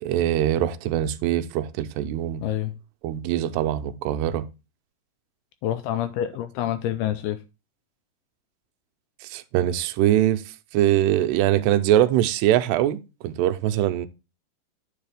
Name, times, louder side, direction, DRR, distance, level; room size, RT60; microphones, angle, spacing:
voice 1, 0.0-2.4 3.0-4.5 9.2-10.4 10.7-14.1, right 12 dB, 80° right, 2.7 m, -22 dB
voice 2, 2.4-2.7 5.6-7.4, left 11 dB, 80° left, 2.4 m, -27 dB
9.6 x 5.6 x 3.4 m
omnidirectional pair, 4.9 m